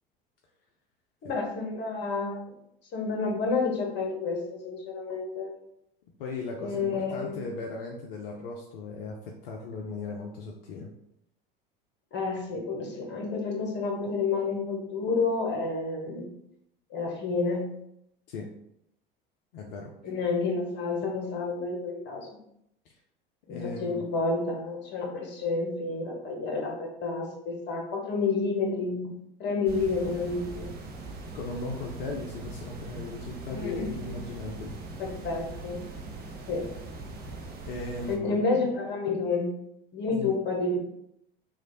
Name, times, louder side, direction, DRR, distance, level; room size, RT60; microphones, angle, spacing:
voice 1, 1.2-2.4 2.9-5.6 6.6-7.4 12.1-16.3 16.9-17.8 20.0-22.3 23.5-29.1 29.4-30.7 33.5-34.1 35.0-35.9 36.5-36.7 38.1-39.6 39.9-40.8, left 4 dB, 40° left, 0 dB, 1.2 m, -30 dB
voice 2, 6.2-10.9 18.3-18.5 19.5-19.9 22.9-23.0 23.5-24.0 31.3-34.8 37.6-38.7 40.1-40.3, left 3 dB, 65° left, 0 dB, 0.6 m, -37 dB
sound 1, 29.7-38.2, right 3 dB, 35° right, 0.7 m, -41 dB
3.1 x 2.5 x 3.9 m, 0.78 s
figure-of-eight pair, 75°, 29 cm